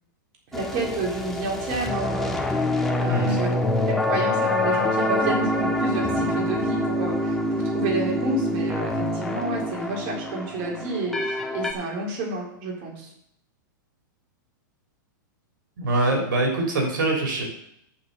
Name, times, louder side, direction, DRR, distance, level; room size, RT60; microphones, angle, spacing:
sound 1, 0.5-11.7, left 1 dB, 5° left, 1.5 m, -25 dB
voice 1, 0.5-3.6 3.9-13.1, right 2 dB, 45° right, -1 dB, 4.1 m, -30 dB
voice 2, 15.8-17.4, right 2 dB, 80° right, 1 dB, 3.7 m, -23 dB
8.7 x 7.0 x 7.9 m, 0.71 s
hypercardioid pair, 140°, 11 cm